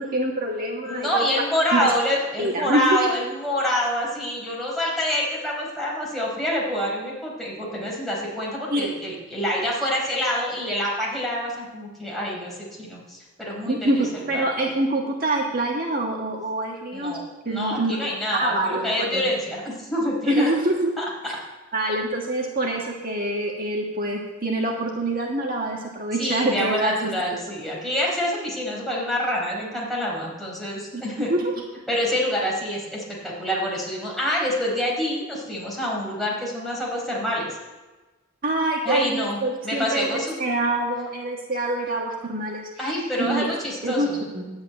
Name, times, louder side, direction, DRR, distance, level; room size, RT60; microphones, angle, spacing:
voice 1, 0.0-1.2 1.7-1.9 2.4-3.1 8.7-8.9 13.6-17.2 17.4-19.2 20.3-20.9 21.2-21.3 21.7-27.1 30.9-31.0 31.3-31.5 38.4-40.1 40.4-43.5 43.8-44.1 44.3-44.5, right 1 dB, 45° right, 0 dB, 1.6 m, -25 dB
voice 2, 0.8-13.9 14.3-14.4 16.9-20.5 21.0-21.1 26.2-31.3 31.9-37.6 38.8-40.4 42.8-44.2, equal, ahead, -5 dB, 4.6 m, -26 dB
11.0 x 8.8 x 9.1 m, 1.2 s
head